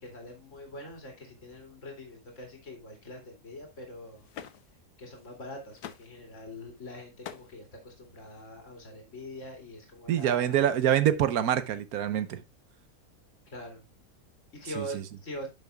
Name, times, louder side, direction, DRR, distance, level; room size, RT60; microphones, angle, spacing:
voice 1, 0.0-4.3 5.0-10.6 13.5-13.8 14.5-15.5, equal, 55° left, 2.9 m, -43 dB
sound 1, 4.1-4.8 5.1-5.4 5.7-6.2 7.0-7.5 8.3-8.5, left 10 dB, 90° left, 1.2 m, -45 dB
voice 2, 10.1-12.4 14.8-15.0, right 10 dB, 75° right, 1.2 m, -26 dB
10.5 x 6.7 x 2.2 m
omnidirectional pair, 1.6 m